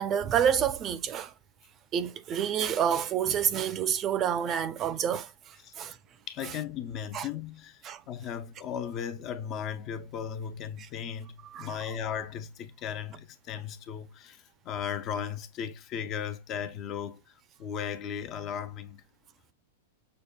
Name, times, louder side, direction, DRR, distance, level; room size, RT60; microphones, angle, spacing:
voice 1, 0.0-1.3 1.9-6.0 6.4-6.5 7.1-7.3 7.8-8.0 11.4-11.8, right 9 dB, 30° right, 0.5 m, -28 dB
voice 2, 6.3-17.3 17.6-19.0, left 8 dB, 40° left, 0.5 m, -36 dB
6.5 x 2.2 x 2.3 m
hypercardioid pair, 120°, 0 cm